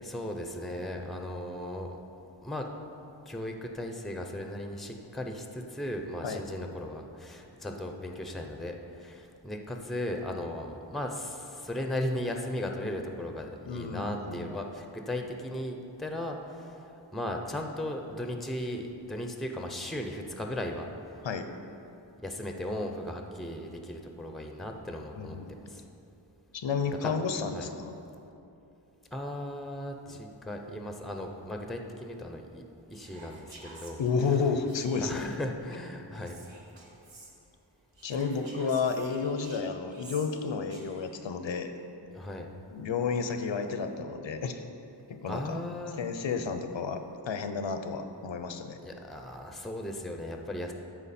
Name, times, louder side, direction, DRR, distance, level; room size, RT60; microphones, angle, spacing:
voice 1, 0.0-2.7 3.3-20.9 22.2-25.4 25.6-25.8 27.0-27.1 27.5-27.7 29.1-32.6 32.9-34.0 35.0-36.4 42.1-42.5 45.2-46.0 48.8-50.7, left 1 dB, ahead, 4 dB, 0.6 m, -37 dB
voice 2, 13.6-14.5 21.2-21.5 25.1-25.5 26.5-27.9 30.1-30.2 34.0-35.3 38.0-41.7 42.7-44.6 45.1-45.6 46.0-48.8, left 5 dB, 80° left, 8 dB, 0.7 m, -31 dB
Whispering, 32.9-35.4 36.1-37.3 37.9-41.2, right 2 dB, 85° right, 1.3 m, -51 dB
13.5 x 4.6 x 4.2 m, 2.8 s
wide cardioid pair, 95°, 44 cm